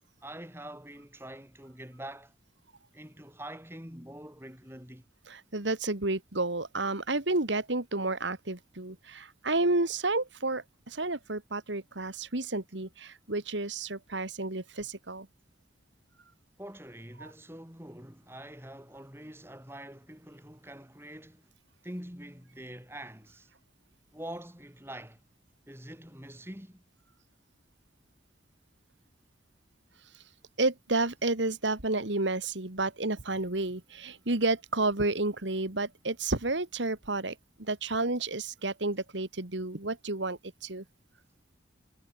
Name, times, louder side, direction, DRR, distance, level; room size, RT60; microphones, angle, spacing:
voice 1, 0.2-2.3 2.9-5.0 16.6-21.5 21.8-23.5 24.1-25.2 25.7-26.8, right 1 dB, 15° right, 6.4 m, -45 dB
voice 2, 5.3-15.3 17.2-17.3 30.1-30.2 30.6-40.8, right 2 dB, 80° right, 2.5 m, -31 dB
head